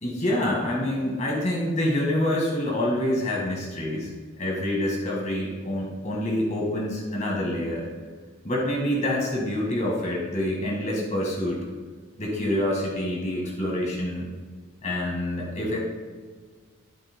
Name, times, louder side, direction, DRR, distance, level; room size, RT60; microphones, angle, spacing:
voice 1, 0.0-4.1 4.4-7.9 8.4-11.6 12.2-14.3 14.8-15.8, left 1 dB, 35° left, -2 dB, 1.8 m, -26 dB
12.5 x 7.5 x 2.2 m, 1.5 s
head